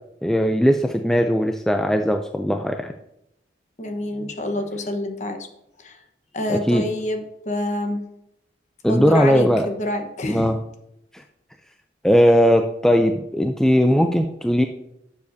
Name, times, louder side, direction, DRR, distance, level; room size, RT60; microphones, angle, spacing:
voice 1, 0.2-2.9 6.5-6.8 8.8-9.7 10.3-10.6 11.1-11.2 12.0-14.6, equal, 5° left, 5 dB, 0.4 m, -18 dB
voice 2, 3.8-5.4 5.8-6.0 6.3-8.0 8.9-10.5, left 1 dB, 40° left, 5 dB, 1.1 m, -27 dB
11.5 x 7.3 x 2.7 m, 0.81 s
head